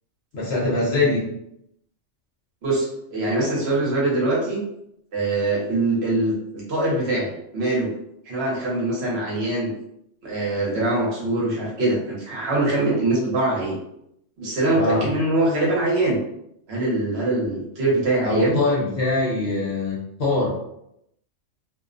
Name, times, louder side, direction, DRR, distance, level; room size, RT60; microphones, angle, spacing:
voice 1, 0.3-1.3 14.8-15.1 18.2-20.5, left 2 dB, 60° left, -4 dB, 0.9 m, -23 dB
voice 2, 2.6-4.6 5.1-7.9 8.3-9.7 10.2-13.7 14.4-16.2 16.7-18.6, right 2 dB, 60° right, -5 dB, 0.9 m, -23 dB
2.4 x 2.1 x 2.4 m, 0.78 s
omnidirectional pair, 1.3 m